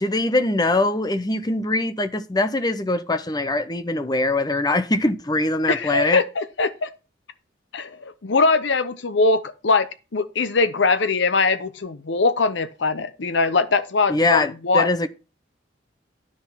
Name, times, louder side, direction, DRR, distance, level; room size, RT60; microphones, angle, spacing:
voice 1, 0.0-6.2 14.1-15.1, left 2 dB, 20° left, 0.7 m, -22 dB
voice 2, 5.7-6.9 7.7-14.9, left 3 dB, 75° left, 0.7 m, -21 dB
10.0 x 6.3 x 5.6 m
head